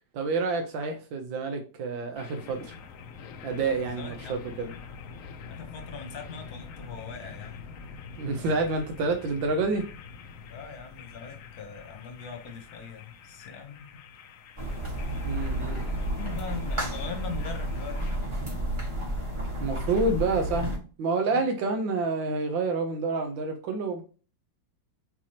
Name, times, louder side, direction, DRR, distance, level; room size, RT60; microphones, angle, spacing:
voice 1, 0.1-2.7 3.4-4.7 8.2-9.9 15.2-15.9 19.6-20.7 21.0-24.0, right 3 dB, 80° right, 1.5 m, -28 dB
sound 1, 2.2-18.2, left 5 dB, 75° left, 0.7 m, -46 dB
voice 2, 3.9-4.4 5.5-7.7 8.3-8.5 10.5-14.0 15.9-18.1 19.7-20.3 21.3-21.4, left 5 dB, 60° left, 1.3 m, -41 dB
sound 2, 14.6-20.8, right 1 dB, 15° right, 1.3 m, -31 dB
6.1 x 2.9 x 2.9 m
omnidirectional pair, 2.1 m